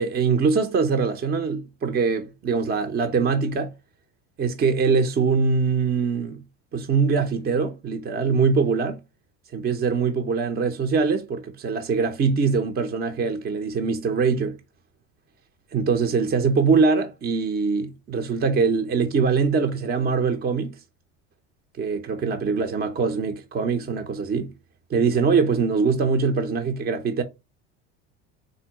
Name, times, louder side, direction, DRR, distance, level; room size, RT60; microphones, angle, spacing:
voice 1, 0.0-3.7 4.4-6.4 6.7-9.0 9.5-14.6 15.7-20.8 21.8-24.5 24.9-27.2, right 5 dB, 25° right, 0.5 m, -23 dB
3.7 x 2.2 x 4.3 m
supercardioid pair, 105°, 36 cm